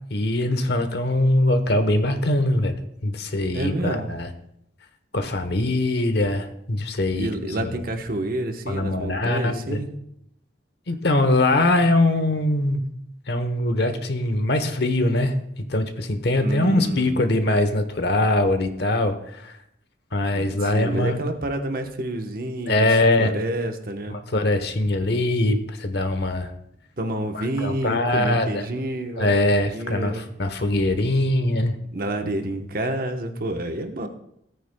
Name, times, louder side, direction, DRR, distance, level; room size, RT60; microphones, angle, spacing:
voice 1, 0.1-2.7 3.0-4.3 5.1-7.3 7.6-7.8 8.7-9.8 10.9-12.8 13.3-15.3 15.7-19.5 20.1-21.2 22.7-23.4 24.1-26.5 27.3-28.6 29.2-31.8, left 1 dB, 65° left, 8 dB, 1.0 m, -22 dB
voice 2, 3.5-4.1 7.2-9.9 16.4-17.2 20.3-24.2 27.0-30.3 31.9-34.1, right 1 dB, 55° right, 5 dB, 1.1 m, -29 dB
17.0 x 9.3 x 2.3 m, 0.75 s
head